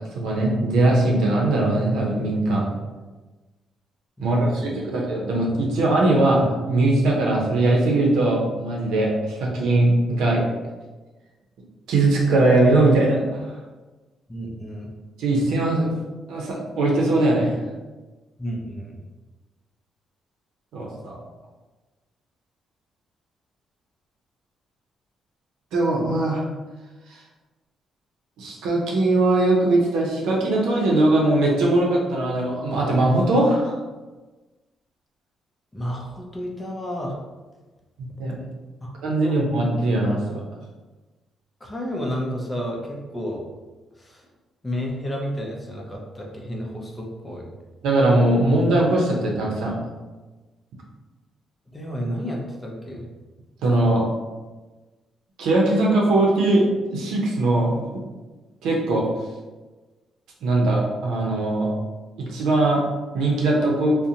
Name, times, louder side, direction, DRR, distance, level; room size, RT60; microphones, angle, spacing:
voice 1, 0.1-2.6 4.2-10.4 11.9-13.5 15.2-15.9 16.3-17.6 20.7-21.2 25.7-26.4 28.4-33.8 38.2-38.3 39.0-40.4 47.8-49.7 53.6-54.1 55.4-57.8 58.6-59.1 60.4-61.7 62.2-62.8 63.1-64.0, right 2 dB, 85° right, -2 dB, 0.6 m, -20 dB
voice 2, 4.2-5.0 14.3-14.9 18.4-19.0 35.7-37.2 38.8-38.9 39.2-39.4 41.6-43.5 44.0-44.3 44.6-47.5 51.7-53.1, equal, 15° left, -1 dB, 0.5 m, -31 dB
2.5 x 2.1 x 2.7 m, 1.2 s
cardioid pair, 90°, 0 cm